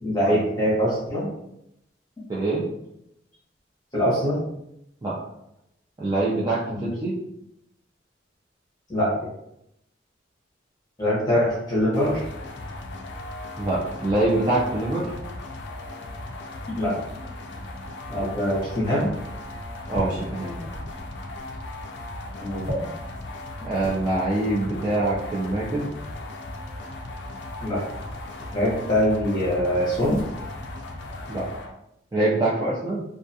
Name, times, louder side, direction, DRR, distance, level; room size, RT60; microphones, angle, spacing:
voice 1, 0.0-1.3 3.9-4.4 6.7-6.9 8.9-9.1 11.0-12.2 16.8-16.9 18.1-19.1 22.4-22.7 23.6-23.7 27.6-27.8 28.5-30.2, equal, 20° left, -8 dB, 0.8 m, -23 dB
voice 2, 2.3-2.6 5.0-5.1 6.0-7.1 13.6-15.1 19.9-20.5 23.6-25.9 31.3-31.5 32.1-33.0, right 2 dB, 20° right, -7 dB, 0.4 m, -24 dB
sound 1, 11.9-31.7, left 2 dB, 70° left, 0.4 m, -37 dB
sound 2, 19.4-24.0 24.9-26.3 27.5-27.6 27.9-29.1 29.3-31.6, left 1 dB, 45° right, 1.3 m, -39 dB
2.3 x 2.3 x 2.6 m, 0.80 s
head